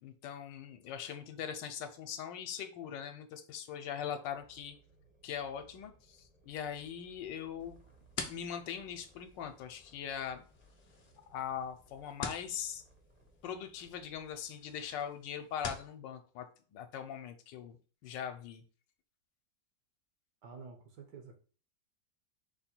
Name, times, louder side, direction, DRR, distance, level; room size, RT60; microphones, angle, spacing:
voice 1, 0.0-4.8 5.2-7.8 8.2-10.4 11.3-12.8 13.4-17.8 18.0-18.6, left 8 dB, 75° left, 7 dB, 1.3 m, -41 dB
sound 1, 4.3-14.4, right 1 dB, 10° right, 0.5 m, -65 dB
sound 2, 7.6-15.9, left 4 dB, 55° left, 0.7 m, -48 dB
voice 2, 20.4-21.4, right 5 dB, 70° right, 4 dB, 1.6 m, -50 dB
5.3 x 2.2 x 4.3 m, 0.39 s
omnidirectional pair, 2.0 m